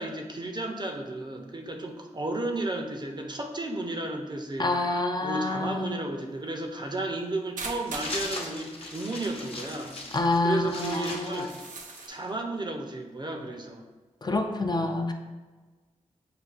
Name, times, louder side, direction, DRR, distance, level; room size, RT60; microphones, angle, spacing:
voice 1, 0.0-4.7 5.2-10.0 10.4-11.5 12.1-13.9, right 2 dB, 35° right, 3 dB, 0.6 m, -33 dB
voice 2, 4.6-6.0 10.1-11.5 14.2-15.1, left 2 dB, 35° left, 4 dB, 0.4 m, -27 dB
sound 1, 7.6-8.2 9.3-9.4 9.6-9.7 10.2-10.3 11.3-12.1, right 4 dB, 90° right, 0.4 m, -39 dB
sound 2, 7.9-12.3, left 2 dB, 50° left, 0.8 m, -39 dB
6.6 x 2.3 x 2.4 m, 1.3 s
cardioid pair, 45°, 13 cm